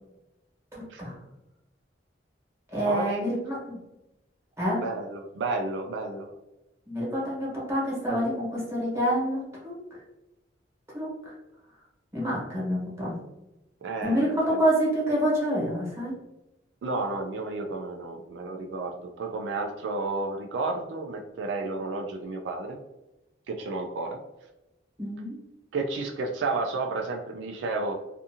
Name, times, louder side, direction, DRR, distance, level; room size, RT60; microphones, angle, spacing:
voice 1, 0.7-1.1 2.7-3.6 4.6-4.8 6.9-9.7 10.9-11.3 12.1-13.1 14.0-16.1 25.0-25.4, equal, 15° right, -6 dB, 1.1 m, -27 dB
voice 2, 2.8-3.2 4.8-6.3 13.8-14.6 16.8-22.8 23.5-24.2 25.7-27.9, right 3 dB, 75° right, 2 dB, 0.3 m, -31 dB
2.6 x 2.4 x 2.7 m, 0.96 s
head